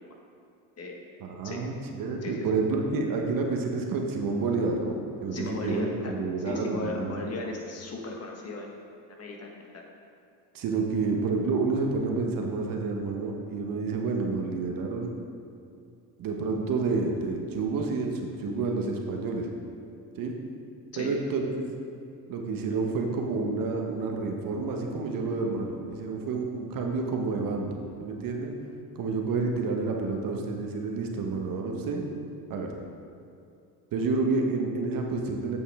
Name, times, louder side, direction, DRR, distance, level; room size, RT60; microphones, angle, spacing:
voice 1, 1.2-7.2 10.5-15.1 16.2-19.5 20.2-20.3 21.0-21.7 22.3-28.5 28.9-32.0 32.5-32.7 33.9-35.6, right 3 dB, 60° right, 2 dB, 1.0 m, -29 dB
voice 2, 5.3-8.7 9.2-9.8 20.9-21.1, left 3 dB, 40° left, 0 dB, 1.3 m, -36 dB
8.7 x 5.3 x 3.5 m, 2.6 s
supercardioid pair, 85°, 39 cm